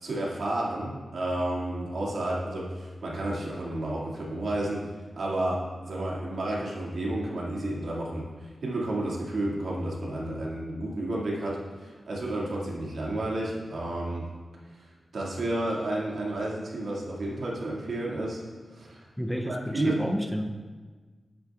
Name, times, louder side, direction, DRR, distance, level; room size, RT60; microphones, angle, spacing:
voice 1, 0.0-4.8 5.2-14.3 15.1-18.4 18.7-19.0 19.5-20.0, right 1 dB, 80° right, -4 dB, 2.0 m, -31 dB
voice 2, 19.2-20.5, equal, ahead, 4 dB, 0.5 m, -30 dB
10.5 x 10.5 x 2.4 m, 1.4 s
wide cardioid pair, 140°, 0 cm